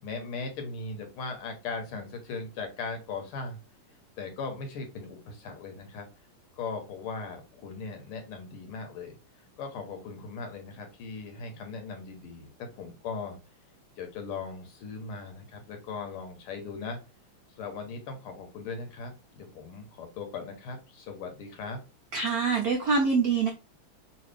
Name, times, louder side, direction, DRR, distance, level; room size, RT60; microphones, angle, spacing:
voice 1, 0.0-3.6 4.2-6.1 6.6-9.2 9.6-12.5 12.8-13.4 14.0-17.0 17.6-21.8, left 4 dB, 85° left, 4 dB, 1.9 m, -38 dB
voice 2, 22.1-23.5, right 4 dB, 85° right, 1 dB, 0.8 m, -25 dB
3.9 x 2.4 x 3.2 m, 0.29 s
omnidirectional pair, 2.4 m